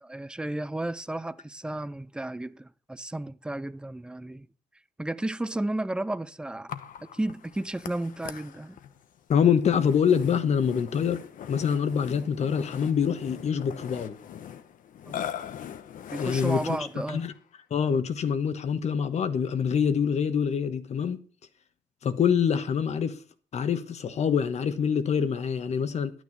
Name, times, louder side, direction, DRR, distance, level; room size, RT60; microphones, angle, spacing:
voice 1, 0.0-4.5 5.0-6.8 7.1-8.8 15.1-15.2 16.1-17.2, right 1 dB, 5° right, 0.4 m, -33 dB
Burping eructation, 6.7-17.4, left 9 dB, 70° left, 1.0 m, -41 dB
voice 2, 9.3-11.2 11.5-14.2 16.2-16.8 17.1-17.3 17.7-21.2 22.0-23.2 23.5-26.1, left 7 dB, 50° left, 1.3 m, -25 dB
11.5 x 9.4 x 5.4 m
wide cardioid pair, 155°, 14 cm